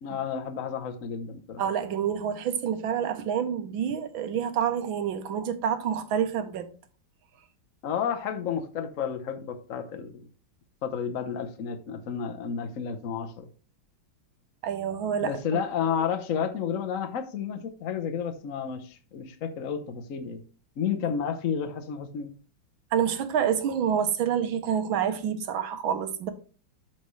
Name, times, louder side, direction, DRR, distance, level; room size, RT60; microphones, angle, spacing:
voice 1, 0.0-1.6 7.8-10.3 10.8-13.5 15.2-20.4 20.8-22.3, left 7 dB, 55° left, 0.9 m, -31 dB
voice 2, 1.6-6.7 14.6-15.4 22.9-26.3, right 8 dB, 75° right, 1.7 m, -27 dB
13.0 x 4.5 x 3.1 m
omnidirectional pair, 2.2 m